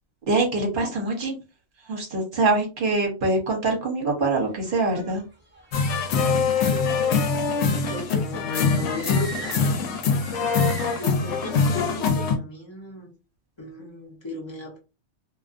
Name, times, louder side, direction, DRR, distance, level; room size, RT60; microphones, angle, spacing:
voice 1, 0.3-1.4 1.9-5.2 11.7-11.8, right 3 dB, 50° right, 0.9 m, -24 dB
sound 1, 4.4-12.0, right 3 dB, 10° right, 0.7 m, -43 dB
sound 2, 5.7-12.4, left 5 dB, 80° left, 0.9 m, -23 dB
voice 2, 6.2-7.2 7.6-10.0 11.0-13.1 13.6-14.8, left 2 dB, 25° left, 0.8 m, -38 dB
2.4 x 2.3 x 2.4 m
omnidirectional pair, 1.3 m